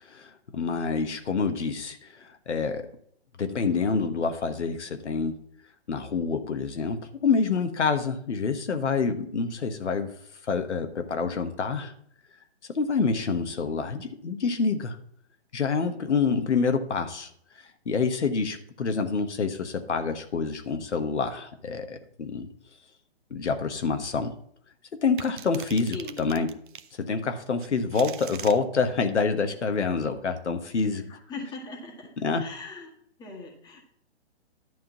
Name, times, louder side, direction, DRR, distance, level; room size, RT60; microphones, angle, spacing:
voice 1, 0.0-2.9 3.4-5.4 5.9-10.1 10.4-11.9 12.7-15.0 15.5-17.3 17.5-22.5 23.3-24.3 25.0-26.5 27.0-31.0 32.2-32.4, left 5 dB, 85° left, 7 dB, 1.3 m, -27 dB
sound 1, 25.2-26.9 27.6-28.6, right 9 dB, 50° right, 0.7 m, -41 dB
voice 2, 31.0-32.1 32.4-32.9 33.2-33.8, left 3 dB, 10° left, -1 dB, 1.7 m, -40 dB
11.0 x 3.7 x 7.1 m, 0.66 s
hypercardioid pair, 150°, 34 cm